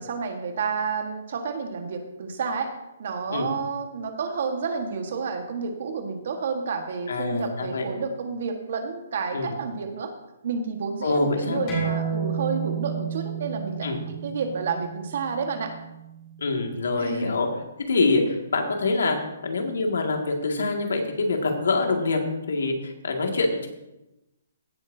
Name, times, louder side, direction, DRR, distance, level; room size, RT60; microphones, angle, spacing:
voice 1, 0.0-2.7 3.0-10.1 10.4-15.7 17.0-17.3, right 5 dB, 45° right, 5 dB, 1.5 m, -30 dB
voice 2, 7.1-7.9 9.3-9.5 11.0-11.7 13.8-14.0 16.4-17.5 17.9-19.2 19.4-22.2 22.5-23.7, left 3 dB, 85° left, 2 dB, 2.1 m, -25 dB
sound 1, 11.7-16.8, right 6 dB, 20° left, 3.8 m, -32 dB
16.5 x 8.3 x 2.8 m, 0.95 s
hypercardioid pair, 175°, 0 cm